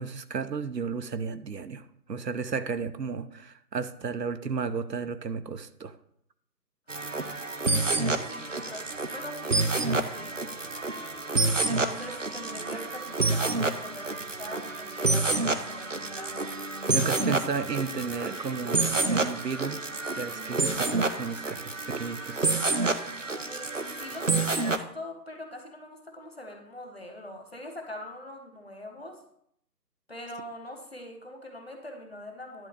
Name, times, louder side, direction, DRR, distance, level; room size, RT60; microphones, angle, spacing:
voice 1, 0.0-6.0 16.9-19.8 20.1-22.6, right 5 dB, 75° right, 11 dB, 0.8 m, -33 dB
voice 2, 6.9-7.3 8.0-10.5 11.7-16.5 16.9-17.2 23.3-29.2 30.1-32.7, left 1 dB, 40° left, 3 dB, 1.1 m, -43 dB
sound 1, 6.9-24.8, right 3 dB, 50° right, 0.5 m, -29 dB
10.5 x 3.5 x 6.8 m, 0.69 s
figure-of-eight pair, 175°, 50 cm